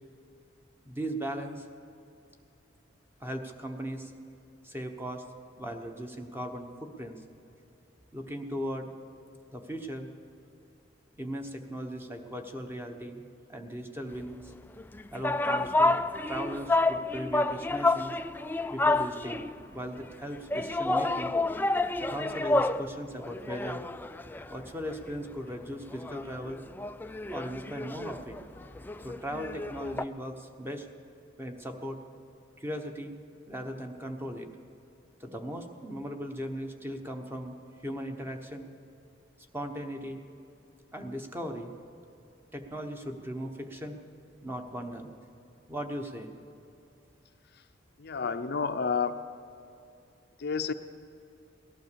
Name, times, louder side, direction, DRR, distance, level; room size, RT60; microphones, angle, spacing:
voice 1, 0.8-1.7 3.2-4.1 4.6-5.2 5.6-7.2 8.1-8.9 9.5-10.1 11.2-13.2 13.5-14.5 15.1-16.0 16.3-18.2 18.7-19.5 19.7-21.3 22.1-23.8 24.5-26.6 27.3-28.4 29.0-30.9 31.4-32.0 32.6-33.2 33.5-34.5 35.2-38.7 39.5-40.2 40.9-41.7 42.5-44.0 44.4-45.1 45.7-46.3, equal, 10° right, 4 dB, 1.1 m, -38 dB
sound 1, 14.8-19.6 20.5-22.9 23.2-25.1 25.5-25.6 25.9-30.0, left 2 dB, 10° left, 0.3 m, -29 dB
voice 2, 48.0-49.1 50.4-50.7, left 5 dB, 55° left, 8 dB, 0.6 m, -30 dB
18.0 x 11.5 x 6.9 m, 2.6 s
head